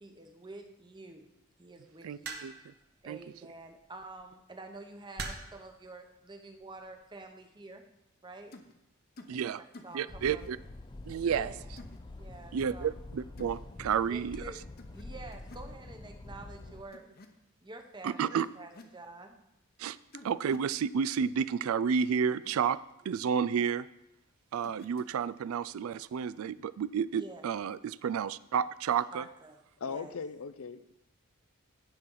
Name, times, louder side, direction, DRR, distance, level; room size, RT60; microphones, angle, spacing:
voice 1, 0.0-1.3 1.6-2.4 3.0-7.8 8.2-8.6 9.4-10.4 11.2-11.7 12.2-12.9 14.1-14.6 14.9-17.1 17.6-19.4 27.1-27.4 29.1-29.6 29.8-30.2, right 2 dB, 20° right, 5 dB, 0.9 m, -48 dB
voice 2, 2.0-2.5 3.1-3.2 9.3-9.6 9.9-10.6 11.0-11.5 12.5-14.4 18.0-18.5 19.8-20.0 20.2-22.8 23.0-23.9 24.5-29.3, right 7 dB, 80° right, 18 dB, 0.3 m, -31 dB
sound 1, 2.2-2.8 4.0-4.2 5.2-5.7 6.6-6.9, right 3 dB, 50° right, 1.1 m, -40 dB
sound 2, 8.5-8.7 9.2-9.4 9.7-10.0 10.3-10.5 11.8-12.0 13.4-13.6 14.8-15.1 15.3-15.7 16.9-17.3 18.4-19.0 20.1-20.7 22.3-22.5 24.6-25.2, left 2 dB, 45° left, 0.9 m, -51 dB
sound 3, 10.1-16.8, left 2 dB, 20° left, 0.4 m, -46 dB
voice 3, 29.8-31.0, left 5 dB, 75° left, 13 dB, 0.6 m, -39 dB
16.0 x 5.8 x 3.9 m, 0.87 s
head